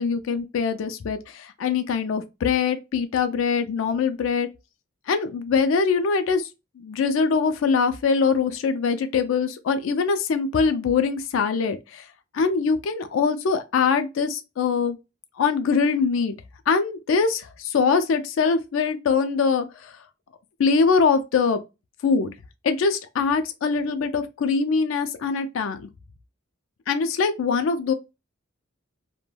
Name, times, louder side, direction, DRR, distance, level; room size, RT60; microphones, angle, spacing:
voice 1, 0.0-4.5 5.1-6.5 6.8-12.0 12.3-15.0 15.4-16.3 16.7-19.9 20.6-21.6 22.0-22.3 22.6-25.9 26.9-27.9, left 5 dB, 85° left, 0.4 m, -23 dB
2.2 x 2.1 x 3.1 m
head